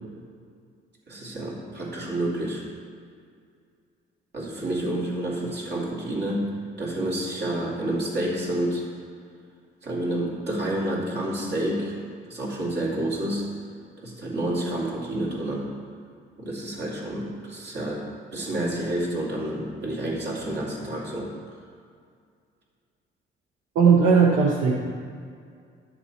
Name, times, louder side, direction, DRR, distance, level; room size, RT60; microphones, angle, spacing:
voice 1, 1.1-2.6 4.3-6.5 6.8-8.8 9.8-11.9 12.3-13.5 14.0-15.7 16.4-18.0 18.3-21.3, right 1 dB, 60° right, -4 dB, 2.5 m, -29 dB
voice 2, 23.7-24.7, right 5 dB, 85° right, -2 dB, 1.0 m, -17 dB
10.5 x 6.9 x 4.4 m, 2.2 s
cardioid pair, 90°, 20 cm